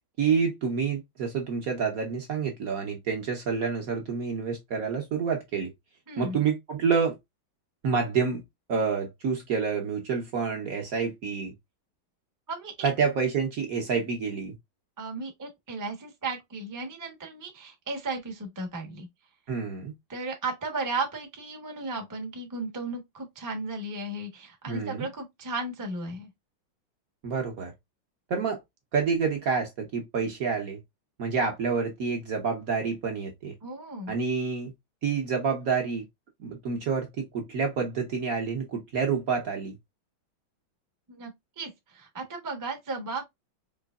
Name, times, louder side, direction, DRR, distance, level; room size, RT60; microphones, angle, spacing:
voice 1, 0.2-5.7 6.2-7.2 7.8-8.4 8.7-11.5 12.8-14.5 19.5-19.9 24.7-25.1 27.2-27.7 28.3-28.6 28.9-30.8 31.2-33.5 34.1-34.7 35.0-36.0 36.4-39.7, right 5 dB, 55° right, 1.1 m, -28 dB
voice 2, 6.1-6.4 12.5-12.9 15.0-19.1 20.1-26.3 33.6-34.1 41.1-41.3 41.6-43.2, right 3 dB, 15° right, 0.6 m, -35 dB
4.7 x 3.0 x 2.3 m
omnidirectional pair, 2.2 m